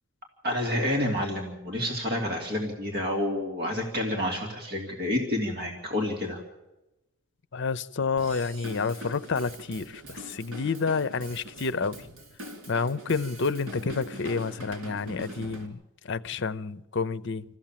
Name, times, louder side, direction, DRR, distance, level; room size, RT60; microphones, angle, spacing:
voice 1, 0.4-6.4, left 1 dB, 45° right, 2.8 m, -29 dB
voice 2, 7.5-12.0 12.7-17.4, left 4 dB, 55° left, 0.7 m, -29 dB
Drum kit / Drum, 8.2-15.7, equal, 80° right, 3.4 m, -43 dB
27.0 x 14.5 x 7.5 m
head